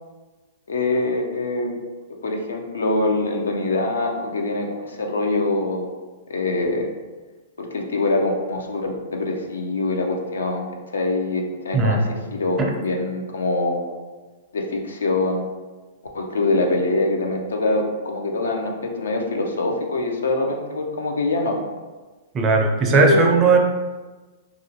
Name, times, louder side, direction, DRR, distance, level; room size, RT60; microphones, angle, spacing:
voice 1, 0.7-1.7 2.2-5.9 6.3-6.9 7.6-10.7 10.9-12.0 12.3-13.9 14.5-15.5 16.1-21.6 22.9-23.4, left 2 dB, 85° left, 2 dB, 0.4 m, -24 dB
voice 2, 11.7-12.1 22.3-23.6, right 4 dB, 25° right, 2 dB, 0.4 m, -17 dB
2.4 x 2.0 x 2.7 m, 1.3 s
hypercardioid pair, 125°, 0 cm